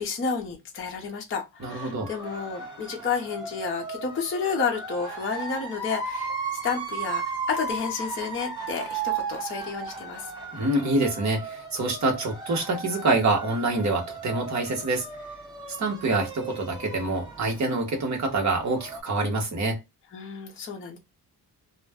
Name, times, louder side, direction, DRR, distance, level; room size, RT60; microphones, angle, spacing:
voice 1, 0.0-10.3 20.1-21.0, left 5 dB, 30° left, 0.6 m, -31 dB
sound 1, 1.6-19.0, right 4 dB, 10° right, 1.0 m, -36 dB
voice 2, 1.6-2.1 10.5-15.1 15.8-19.8, right 2 dB, 45° right, 0.9 m, -26 dB
2.4 x 2.1 x 3.3 m
wide cardioid pair, 175°, 40 cm